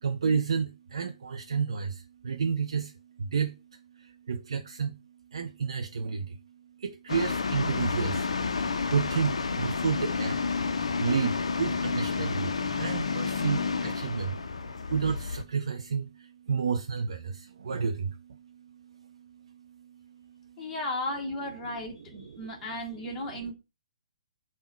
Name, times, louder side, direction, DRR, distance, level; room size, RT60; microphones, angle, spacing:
voice 1, 0.0-3.6 3.9-5.0 5.3-6.4 6.8-20.6, right 6 dB, 55° right, 0.3 m, -31 dB
sound 1, 7.1-15.4, left 4 dB, 65° left, 0.4 m, -30 dB
voice 2, 20.6-23.5, left 1 dB, 15° left, 0.9 m, -35 dB
3.5 x 2.1 x 4.3 m
figure-of-eight pair, 130°, 3 cm